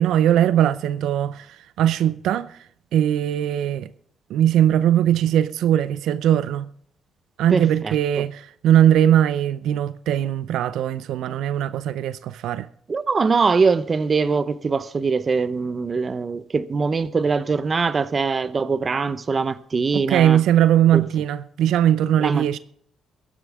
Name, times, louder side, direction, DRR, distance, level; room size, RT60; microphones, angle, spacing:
voice 1, 0.0-2.6 2.9-3.9 4.3-6.7 7.4-12.7 19.9-22.6, right 11 dB, 85° right, 0.5 m, -20 dB
voice 2, 7.5-7.9 12.9-20.4 20.9-21.0 22.2-22.6, right 4 dB, 35° right, 0.8 m, -22 dB
21.5 x 10.0 x 3.5 m
cardioid pair, 90°, 0 cm